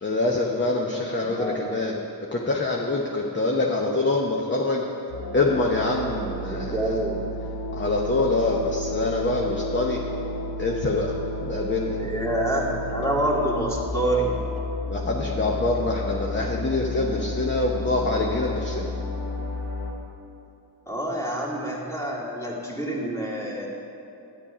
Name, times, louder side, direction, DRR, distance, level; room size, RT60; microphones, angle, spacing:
voice 1, 0.0-2.0 2.3-4.8 5.3-6.9 7.7-10.0 10.6-11.1 11.4-12.0 14.9-18.9, left 2 dB, 25° left, -1 dB, 1.0 m, -25 dB
voice 2, 1.2-1.6 6.5-7.3 12.0-14.3 20.9-23.7, right 1 dB, 5° left, -4 dB, 2.3 m, -27 dB
sound 1, 5.1-19.9, left 2 dB, 75° left, 1.6 m, -32 dB
10.5 x 8.8 x 5.0 m, 2.8 s
cardioid pair, 70°, 43 cm